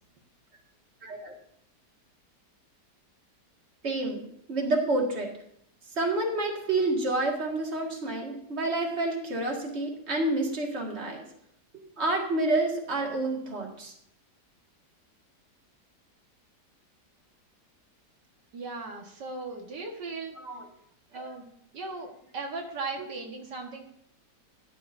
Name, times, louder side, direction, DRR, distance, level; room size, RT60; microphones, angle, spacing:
voice 1, 1.0-1.3 3.8-4.2 4.5-5.3 5.9-11.2 12.0-13.9 20.4-20.7 21.1-21.3, right 2 dB, 40° right, -1 dB, 2.2 m, -29 dB
voice 2, 18.5-20.4 21.1-21.5 21.7-23.8, right 3 dB, 90° right, 1 dB, 2.2 m, -37 dB
16.0 x 10.5 x 2.7 m, 0.70 s
omnidirectional pair, 1.8 m